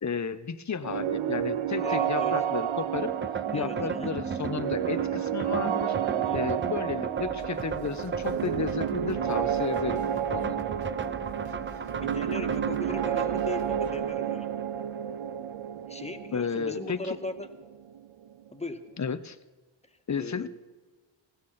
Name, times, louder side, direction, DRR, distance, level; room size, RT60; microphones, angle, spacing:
voice 1, 0.0-3.1 3.5-10.6 16.3-17.2 19.0-19.4 20.1-20.5, left 6 dB, 35° left, 13 dB, 1.1 m, -33 dB
sound 1, 0.8-18.5, right 10 dB, 75° right, 1.0 m, -31 dB
voice 2, 1.8-2.3 3.5-4.1 6.1-6.4 12.0-14.5 15.9-17.5 18.5-18.8 20.2-20.5, left 2 dB, 15° left, 6 dB, 2.0 m, -38 dB
sound 2, 2.9-14.7, right 5 dB, 25° right, 0.7 m, -36 dB
sound 3, 7.2-14.0, right 3 dB, 50° right, 3.4 m, -47 dB
19.5 x 15.5 x 4.3 m, 1.3 s
supercardioid pair, 50°, 48 cm